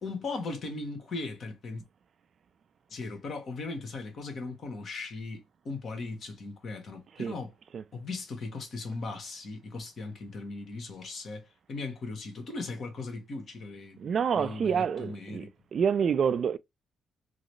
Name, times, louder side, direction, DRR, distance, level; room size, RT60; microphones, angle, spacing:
voice 1, 0.0-1.8 2.9-7.5 7.9-15.5, left 3 dB, 55° left, 1.3 m, -38 dB
voice 2, 14.0-15.5 15.7-16.6, right 7 dB, 55° right, 0.3 m, -27 dB
3.9 x 2.0 x 3.1 m
cardioid pair, 90°, 0 cm